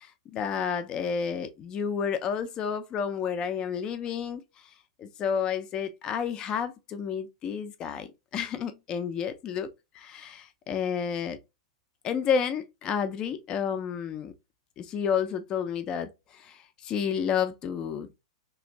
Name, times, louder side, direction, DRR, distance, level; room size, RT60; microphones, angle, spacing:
voice 1, 0.0-4.4 5.0-9.7 9.9-11.4 12.0-14.3 14.8-18.1, left 7 dB, 30° left, 0.5 m, -30 dB
3.1 x 2.5 x 2.9 m
figure-of-eight pair, 100°, 3 cm